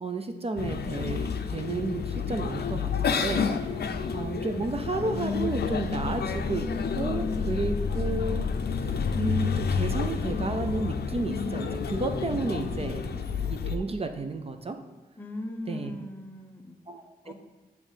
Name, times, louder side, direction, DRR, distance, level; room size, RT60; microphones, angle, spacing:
voice 1, 0.0-3.4 4.1-8.5 8.8-14.8 15.7-16.0 16.9-17.3, right 3 dB, 35° right, 6 dB, 0.4 m, -32 dB
sound 1, 0.6-13.8, left 5 dB, 80° left, 0.5 m, -29 dB
voice 2, 15.2-16.8 17.2-17.3, left 1 dB, 10° left, 3 dB, 0.7 m, -39 dB
7.0 x 3.2 x 4.9 m, 1.2 s
wide cardioid pair, 105°, 17 cm